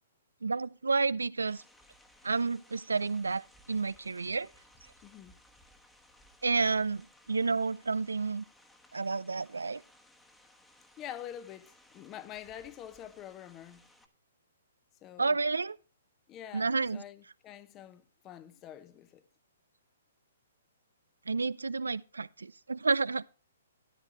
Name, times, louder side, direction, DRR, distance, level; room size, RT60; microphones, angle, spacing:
voice 1, 0.4-1.6 2.2-4.5 6.4-8.4 8.9-9.8 15.2-15.8 16.5-17.0 21.3-23.4, right 4 dB, 85° right, 0.4 m, -30 dB
sound 1, 1.5-14.1, left 1 dB, 5° left, 1.3 m, -61 dB
voice 2, 5.0-5.4 11.0-13.8 15.0-15.4 16.3-19.3, left 11 dB, 25° left, 0.9 m, -46 dB
13.5 x 9.7 x 3.0 m
hypercardioid pair, 130°, 0 cm